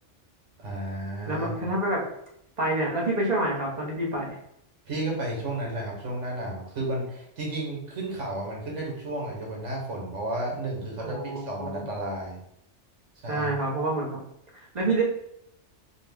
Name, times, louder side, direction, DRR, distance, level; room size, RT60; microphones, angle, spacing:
voice 1, 0.6-1.6 4.9-12.4 13.2-13.7, right 1 dB, 80° right, -1 dB, 1.5 m, -32 dB
voice 2, 1.3-2.0 2.6-4.4 11.0-11.4 11.7-11.9 13.3-14.2 14.5-15.0, right 2 dB, 40° right, -3 dB, 1.0 m, -27 dB
4.5 x 2.3 x 3.4 m, 0.74 s
omnidirectional pair, 1.2 m